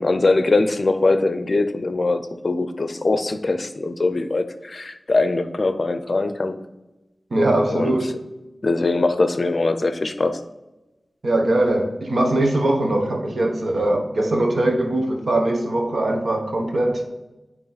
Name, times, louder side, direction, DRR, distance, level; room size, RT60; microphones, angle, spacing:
voice 1, 0.0-6.6 7.7-8.0 8.6-10.4, left 2 dB, 50° left, 9 dB, 0.5 m, -22 dB
voice 2, 7.3-8.1 11.2-17.0, right 1 dB, 70° right, 2 dB, 1.1 m, -21 dB
8.9 x 3.0 x 4.0 m, 1.0 s
wide cardioid pair, 80°, 0 cm